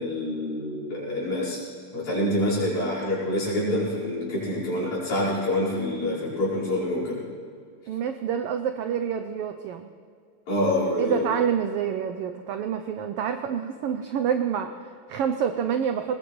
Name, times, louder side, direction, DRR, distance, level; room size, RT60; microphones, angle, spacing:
voice 1, 0.0-1.6 1.9-7.2 10.5-11.3, left 1 dB, 80° left, -6 dB, 6.2 m, -26 dB
voice 2, 7.9-9.9 11.0-16.2, right 8 dB, 85° right, 8 dB, 1.3 m, -27 dB
20.5 x 20.0 x 3.1 m, 2.2 s
omnidirectional pair, 3.3 m